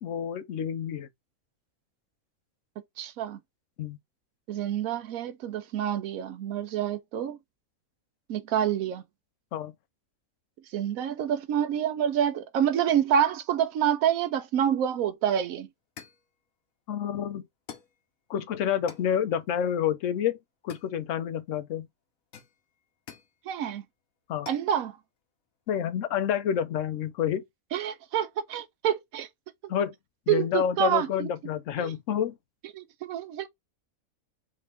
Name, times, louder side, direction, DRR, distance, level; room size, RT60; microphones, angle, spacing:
voice 1, 0.0-1.1 3.8-4.0 9.5-9.7 16.9-17.4 18.3-20.4 20.6-21.9 24.3-24.5 25.7-27.4 29.7-29.9 30.3-32.3, left 9 dB, 70° left, 1.0 m, -28 dB
voice 2, 3.0-3.4 4.5-7.4 8.3-9.0 10.7-15.7 23.5-23.8 24.5-25.0 27.7-29.3 29.6-29.7 30.3-31.3 31.8-31.9 32.7-33.5, right 9 dB, 90° right, 1.1 m, -27 dB
sound 1, 15.3-15.4 16.0-16.3 17.7-18.0 18.9-19.2 20.7-21.3 22.3-23.4 24.5-24.7, left 8 dB, 90° left, 1.3 m, -46 dB
5.1 x 2.6 x 3.4 m
omnidirectional pair, 1.4 m